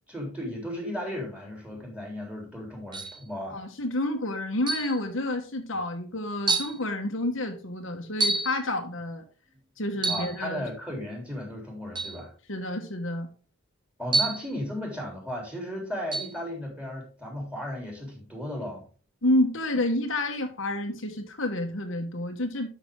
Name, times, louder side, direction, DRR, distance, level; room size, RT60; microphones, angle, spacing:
voice 1, 0.1-3.6 10.1-12.3 14.0-18.8, left 1 dB, 5° right, 0 dB, 3.5 m, -35 dB
sound 1, 2.9-3.2 4.7-5.0 5.8-5.9 6.5-6.8 8.2-8.6 10.0-10.4 12.0-12.2 14.1-14.5 16.1-16.4, right 3 dB, 20° right, 0.8 m, -27 dB
voice 2, 3.5-9.2 9.8-10.7 12.5-13.3 19.2-22.7, left 1 dB, 60° left, 4 dB, 1.3 m, -29 dB
11.5 x 6.3 x 3.8 m, 0.38 s
head